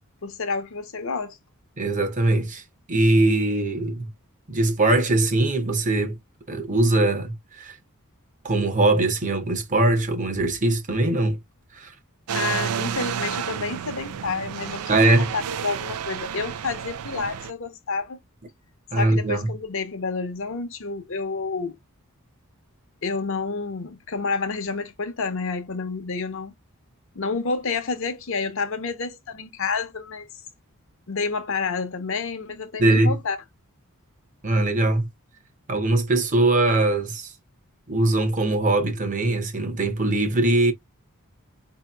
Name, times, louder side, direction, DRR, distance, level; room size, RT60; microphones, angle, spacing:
voice 1, 0.2-1.4 12.3-18.2 18.9-21.8 23.0-26.5 27.1-30.3 31.1-33.4, left 4 dB, 60° left, 0.8 m, -29 dB
voice 2, 1.8-2.6 2.9-4.1 4.5-6.2 6.5-7.8 8.4-11.4 11.7-11.9 14.9-15.3 18.9-19.5 32.8-33.2 34.4-35.1 35.7-37.3 37.9-40.7, right 2 dB, 35° right, 0.8 m, -21 dB
sound 1, 12.3-17.5, right 8 dB, 90° right, 0.4 m, -31 dB
4.5 x 2.8 x 2.2 m
head